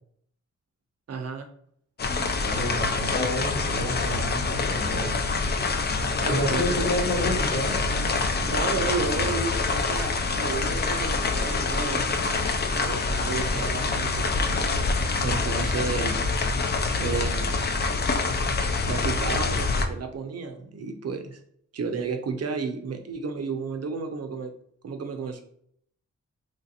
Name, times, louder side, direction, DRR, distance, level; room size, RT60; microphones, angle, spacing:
voice 1, 1.1-1.5 5.5-5.7 6.2-6.9 8.2-12.1 12.7-14.3 15.2-16.3 17.0-17.7 18.8-21.4 21.7-24.5 24.8-25.4, right 5 dB, 55° right, 7 dB, 0.5 m, -32 dB
sound 1, 2.0-19.8, left 4 dB, 35° left, 0.4 m, -26 dB
voice 2, 2.4-5.1 6.3-7.8, left 1 dB, 50° left, -1 dB, 1.1 m, -29 dB
3.1 x 2.5 x 2.7 m, 0.65 s
cardioid pair, 75°, 30 cm